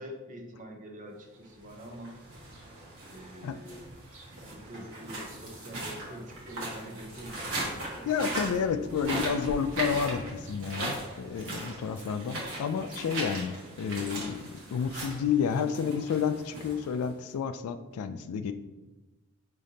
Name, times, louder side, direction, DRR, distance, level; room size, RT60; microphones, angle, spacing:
voice 1, 0.0-2.2 3.1-4.2 4.5-8.1, equal, 35° right, 2 dB, 0.7 m, -45 dB
sound 1, 1.6-17.3, right 2 dB, 65° right, 1.4 m, -39 dB
voice 2, 8.1-18.5, left 7 dB, 85° left, 11 dB, 0.3 m, -30 dB
sound 2, 8.7-10.0 10.5-10.6 10.9-11.0 11.3-11.6 12.0-12.1 12.5-12.6 12.9-13.1 13.4-13.5 16.6-16.7, equal, 5° right, 0.9 m, -46 dB
5.1 x 3.7 x 2.8 m, 1.1 s
head